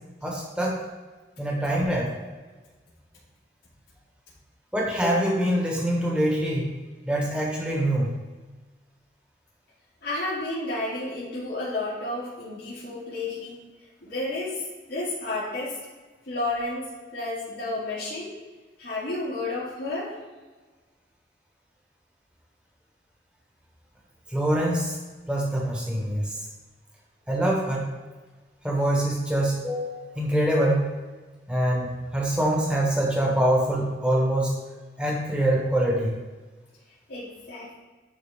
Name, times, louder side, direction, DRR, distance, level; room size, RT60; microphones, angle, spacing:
voice 1, 0.2-0.8 1.4-2.1 4.7-6.6 7.0-8.1 24.3-25.0 25.3-26.3 27.3-27.9 28.6-30.9 31.5-34.5 35.0-36.1, right 1 dB, 5° right, -3 dB, 1.4 m, -24 dB
voice 2, 10.0-13.6 14.0-14.6 14.9-15.8 16.3-16.8 17.1-18.3 18.8-20.1 37.1-37.7, left 2 dB, 90° left, -12 dB, 2.5 m, -31 dB
10.5 x 4.1 x 3.6 m, 1.3 s
head